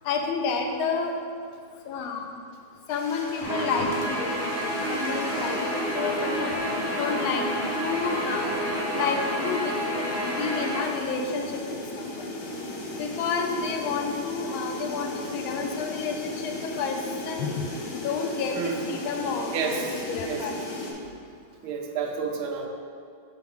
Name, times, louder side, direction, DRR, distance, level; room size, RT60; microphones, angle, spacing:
voice 1, 0.0-1.1 1.9-2.4 2.9-6.5 7.0-7.5 7.8-8.5 8.9-12.3 13.0-17.0 17.2-17.6 17.9-20.8, left 5 dB, 85° left, 3 dB, 1.5 m, -30 dB
sound 1, 2.9-20.9, left 1 dB, 65° left, 0.8 m, -36 dB
Guitar, 3.4-10.8, equal, 30° left, 1.4 m, -29 dB
voice 2, 19.5-20.4 21.0-21.1 21.6-22.7, right 6 dB, 85° right, 3 dB, 1.5 m, -30 dB
4.6 x 4.6 x 5.3 m, 2.2 s
omnidirectional pair, 2.2 m